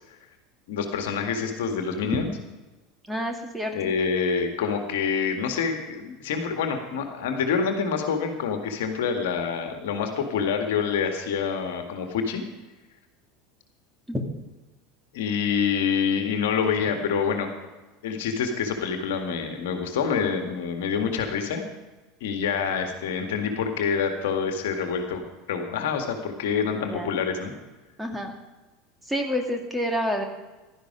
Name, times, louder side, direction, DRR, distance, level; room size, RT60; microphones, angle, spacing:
voice 1, 0.7-2.3 3.7-12.4 15.1-17.5 18.0-21.6 22.2-27.5, left 6 dB, 60° left, 5 dB, 1.9 m, -26 dB
voice 2, 3.1-3.9 14.1-14.3 26.6-27.1 28.0-28.3 29.1-30.2, equal, 5° right, 3 dB, 2.4 m, -29 dB
16.0 x 12.0 x 5.1 m, 1.1 s
figure-of-eight pair, 75°, 0 cm